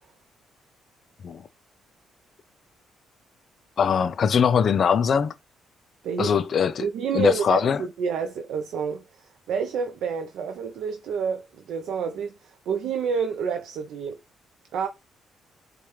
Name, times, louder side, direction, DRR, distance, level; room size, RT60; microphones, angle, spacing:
voice 1, 3.8-5.3 6.2-6.9 7.1-7.8, left 7 dB, 55° left, 0.3 m, -21 dB
voice 2, 6.0-6.4 6.8-14.2 14.7-14.9, right 6 dB, 80° right, 0.4 m, -29 dB
4.7 x 2.2 x 2.9 m
cardioid pair, 90°, 0 cm